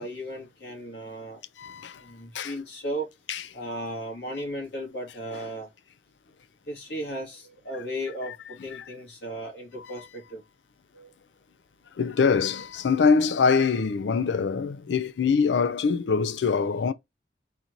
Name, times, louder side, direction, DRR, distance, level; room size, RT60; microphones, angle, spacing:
voice 1, 0.0-1.4 2.0-3.1 3.5-5.7 6.7-10.4 10.9-11.1, equal, 70° left, 2.1 m, -35 dB
voice 2, 1.6-2.0 2.3-2.5 3.3-3.4 8.3-8.4 8.7-8.8 9.8-10.1 12.0-16.9, left 5 dB, 90° left, 0.5 m, -24 dB
4.1 x 2.6 x 4.4 m
head